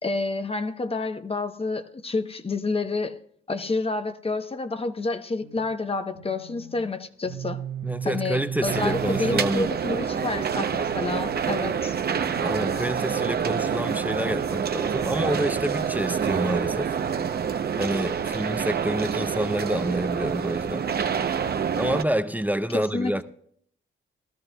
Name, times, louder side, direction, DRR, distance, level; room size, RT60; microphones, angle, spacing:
voice 1, 0.0-3.2 3.5-7.6 8.0-12.0 22.7-23.2, left 3 dB, 25° left, 0.8 m, -29 dB
sound 1, 5.4-5.7 6.1-6.8 7.3-9.7 10.3-14.3 16.1-16.4, right 8 dB, 85° right, 1.0 m, -38 dB
voice 2, 7.8-9.7 12.4-17.0 17.8-20.8 21.7-23.2, right 1 dB, 10° right, 0.6 m, -28 dB
sound 2, 8.7-22.0, right 7 dB, 50° right, 0.6 m, -27 dB
sound 3, 14.8-22.5, left 3 dB, 70° left, 4.2 m, -51 dB
20.0 x 13.5 x 2.2 m
cardioid pair, 75°, 21 cm